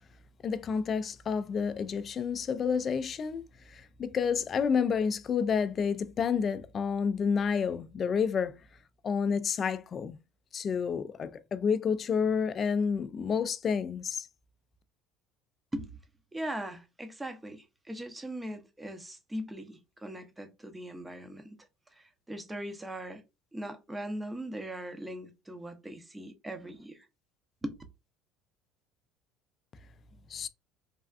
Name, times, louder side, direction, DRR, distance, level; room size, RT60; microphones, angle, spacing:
voice 1, 0.4-8.5 9.0-10.2 10.5-14.3 30.3-30.5, left 6 dB, 35° left, 0.3 m, -29 dB
voice 2, 16.3-21.6 21.9-23.2 23.5-27.1 27.6-27.8, right 1 dB, 10° right, 0.6 m, -40 dB
3.3 x 2.3 x 2.3 m
supercardioid pair, 115°, 0 cm